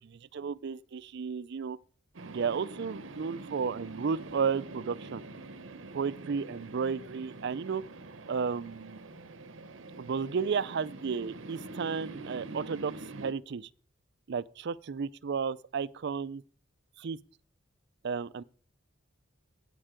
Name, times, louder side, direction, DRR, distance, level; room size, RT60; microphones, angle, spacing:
voice 1, 0.0-1.8 2.2-5.2 5.9-7.8 8.3-9.0 10.0-13.7 14.3-16.4 17.0-17.2 18.0-18.4, right 5 dB, 60° right, 0.4 m, -33 dB
sound 1, 2.1-13.3, right 2 dB, 80° right, 0.9 m, -45 dB
16.5 x 5.5 x 5.0 m
head